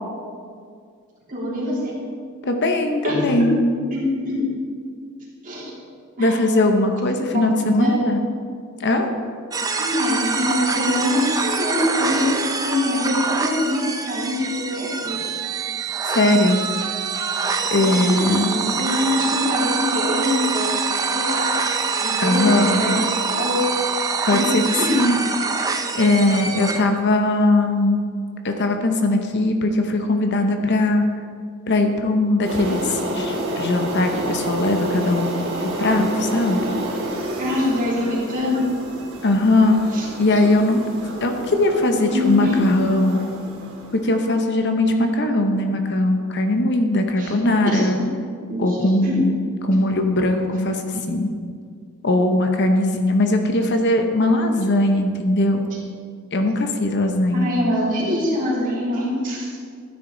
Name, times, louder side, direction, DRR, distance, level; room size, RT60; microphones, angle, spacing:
voice 1, 1.3-2.0 3.0-3.4 3.9-4.5 5.4-5.7 6.2-6.4 7.3-8.1 9.8-15.2 17.8-20.8 21.1-21.5 22.0-23.6 24.3-24.5 24.8-25.0 37.4-38.6 39.9-40.4 42.1-42.6 47.2-47.3 47.6-48.1 48.5-49.2 57.3-59.5, left 1 dB, 40° right, -5 dB, 3.1 m, -24 dB
voice 2, 2.5-3.6 6.2-8.2 8.8-9.0 16.0-16.6 17.7-18.6 22.2-22.8 24.3-24.6 24.9-25.1 25.9-28.0 28.4-31.0 31.7-35.3 35.8-36.6 39.2-39.9 40.2-40.8 41.2-43.3 44.0-48.0 48.6-49.3 49.6-51.3 52.0-55.7 56.3-57.5, left 2 dB, 55° left, 5 dB, 0.9 m, -20 dB
sound 1, 9.5-26.8, right 3 dB, 15° right, 0.6 m, -25 dB
sound 2, 15.1-25.1, right 21 dB, 85° right, 0.6 m, -30 dB
sound 3, 32.4-44.2, right 1 dB, 65° right, 2.8 m, -29 dB
12.5 x 9.9 x 3.9 m, 2.1 s
head